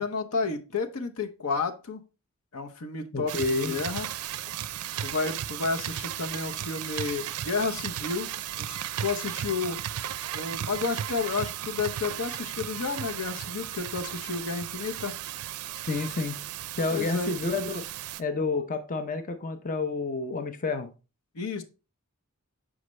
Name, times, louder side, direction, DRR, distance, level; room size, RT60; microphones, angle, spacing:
voice 1, 0.0-2.0 2.5-3.3 3.6-4.1 5.0-8.3 8.5-9.8 10.3-15.1 16.9-17.3 21.3-21.6, left 4 dB, 85° left, 5 dB, 0.8 m, -31 dB
voice 2, 3.1-3.8 15.9-16.4 16.7-17.8 18.2-20.9, left 3 dB, 35° left, 8 dB, 0.6 m, -29 dB
sound 1, 3.3-18.2, right 11 dB, 85° right, 0.4 m, -35 dB
6.4 x 4.9 x 3.1 m, 0.31 s
head